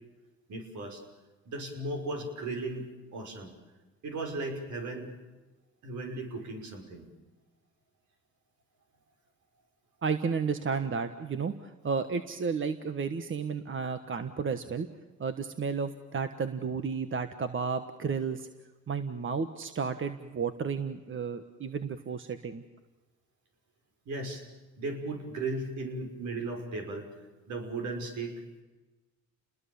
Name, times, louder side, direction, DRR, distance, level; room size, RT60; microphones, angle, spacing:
voice 1, 0.5-1.0 1.5-3.5 4.0-5.1 5.8-7.1 24.1-24.4 24.8-27.1 27.5-28.4, right 2 dB, 75° right, 3 dB, 5.8 m, -36 dB
voice 2, 10.0-14.9 15.2-18.5 18.9-22.6, right 5 dB, 40° right, 9 dB, 1.4 m, -32 dB
29.5 x 21.0 x 7.1 m, 1.2 s
cardioid pair, 90°, 30 cm